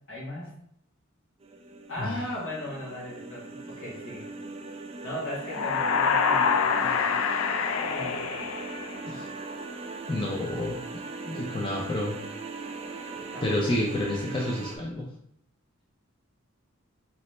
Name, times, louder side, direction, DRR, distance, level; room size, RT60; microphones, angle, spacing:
voice 1, 0.1-0.5 1.9-4.3 5.0-7.2 7.7-8.3 13.1-13.6, left 1 dB, 65° left, -5 dB, 1.6 m, -37 dB
sound 1, 1.4-14.8, right 3 dB, 30° right, 0.4 m, -40 dB
sound 2, 5.4-9.3, left 6 dB, 90° left, 0.4 m, -26 dB
voice 2, 10.1-12.2 13.4-15.1, left 1 dB, 25° left, -3 dB, 0.6 m, -30 dB
4.1 x 2.9 x 3.2 m, 0.70 s
head